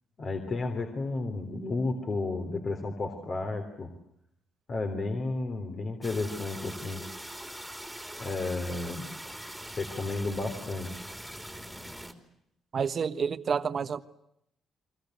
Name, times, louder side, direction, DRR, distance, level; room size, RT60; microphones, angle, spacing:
voice 1, 0.2-3.9 4.7-7.0 8.2-9.0 9.8-11.1, left 3 dB, 40° left, 5 dB, 3.5 m, -32 dB
sound 1, 6.0-12.1, equal, ahead, 3.2 m, -42 dB
voice 2, 12.7-14.0, right 6 dB, 40° right, 11 dB, 1.3 m, -29 dB
30.0 x 24.5 x 8.0 m, 0.76 s
cardioid pair, 125°, 0 cm